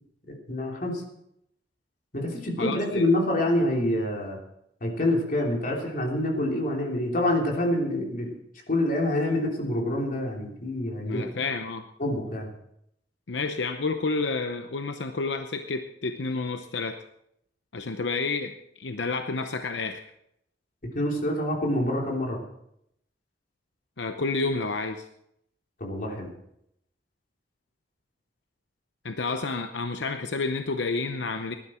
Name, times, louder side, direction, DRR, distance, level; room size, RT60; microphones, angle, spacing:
voice 1, 0.5-1.0 2.1-4.4 4.8-8.3 8.7-11.3 12.0-12.5 20.9-22.4 25.8-26.3, left 1 dB, 50° left, -1 dB, 3.2 m, -26 dB
voice 2, 2.6-3.0 11.1-11.8 13.3-17.0 17.7-20.0 24.0-25.1 29.0-31.6, left 3 dB, 75° left, 7 dB, 0.8 m, -30 dB
19.0 x 11.5 x 4.4 m, 0.77 s
head